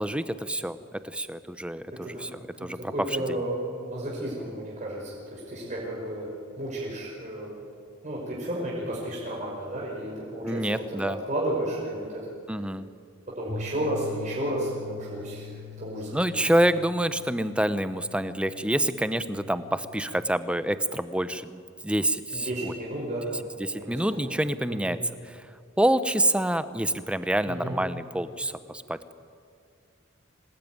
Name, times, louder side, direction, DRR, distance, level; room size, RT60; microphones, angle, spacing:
voice 1, 0.0-3.4 10.4-11.2 12.5-12.9 16.1-22.8 23.6-25.0 25.2-25.5 25.8-29.1, right 1 dB, 5° right, 12 dB, 0.8 m, -27 dB
voice 2, 2.9-6.3 6.6-7.6 8.0-12.2 13.4-16.1 22.3-23.4 23.8-24.0 24.7-24.9 27.4-27.7, right 1 dB, 35° right, -5 dB, 5.3 m, -32 dB
sound 1, 13.5-20.1, left 5 dB, 55° right, 7.3 m, -43 dB
26.0 x 19.0 x 9.5 m, 2.3 s
head